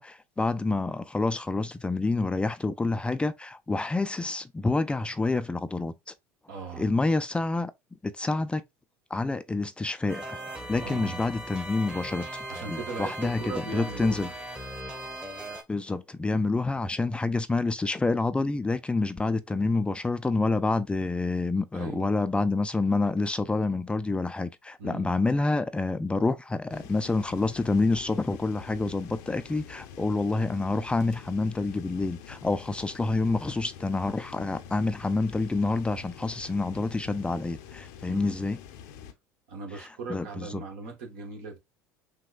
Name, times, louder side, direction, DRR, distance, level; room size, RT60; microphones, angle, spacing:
voice 1, 0.0-6.1 6.8-7.7 8.0-8.6 9.1-14.3 15.7-38.6 39.8-40.6, left 3 dB, 15° left, 0.4 m, -28 dB
voice 2, 6.5-6.9 10.8-11.2 12.5-14.4 21.7-22.1 24.8-25.1 38.1-38.4 39.5-41.6, right 3 dB, 70° right, 1.6 m, -39 dB
sound 1, 10.1-15.6, right 1 dB, 10° right, 1.0 m, -39 dB
sound 2, 26.7-39.1, left 8 dB, 70° left, 0.7 m, -46 dB
6.0 x 2.3 x 2.4 m
hypercardioid pair, 75°, 8 cm